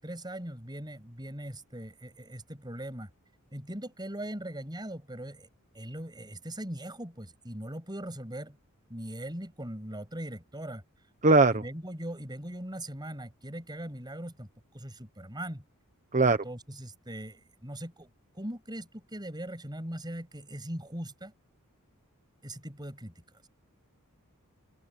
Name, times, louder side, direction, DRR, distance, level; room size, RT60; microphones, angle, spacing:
voice 1, 0.0-3.1 3.5-5.5 5.7-8.6 8.9-10.8 11.5-14.5 14.7-15.6 16.2-18.1 18.3-21.3 22.4-23.5, right 1 dB, 20° right, 7.5 m, -40 dB
voice 2, 11.2-11.6 16.1-16.4, right 3 dB, 35° right, 1.1 m, -20 dB
open air
head